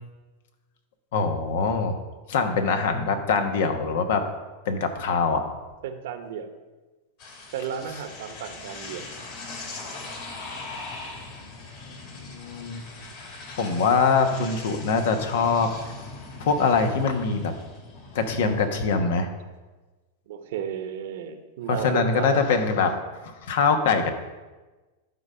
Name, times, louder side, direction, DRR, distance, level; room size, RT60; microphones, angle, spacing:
voice 1, 1.1-2.0 2.3-4.2 4.7-5.4 11.9-12.0 12.2-12.8 13.6-15.7 16.4-17.5 18.1-19.3 21.7-24.1, left 5 dB, 70° left, 7 dB, 1.2 m, -23 dB
voice 2, 5.8-6.5 7.5-9.1 20.3-22.5, right 8 dB, 70° right, 8 dB, 1.0 m, -33 dB
sound 1, 7.2-18.7, left 3 dB, 55° left, 2.4 m, -40 dB
11.5 x 3.9 x 5.6 m, 1.2 s
hypercardioid pair, 125°, 0 cm